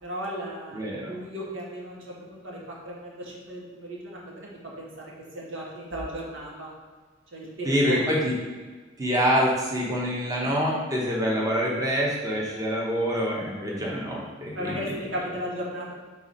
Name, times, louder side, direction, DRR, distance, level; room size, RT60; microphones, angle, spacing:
voice 1, 0.0-2.6 2.8-6.7 7.3-8.0 14.5-15.9, equal, 90° right, -4 dB, 1.6 m, -36 dB
voice 2, 0.7-1.1 7.6-8.3 9.0-14.9, equal, 20° right, -4 dB, 1.0 m, -26 dB
4.7 x 4.0 x 5.4 m, 1.4 s
head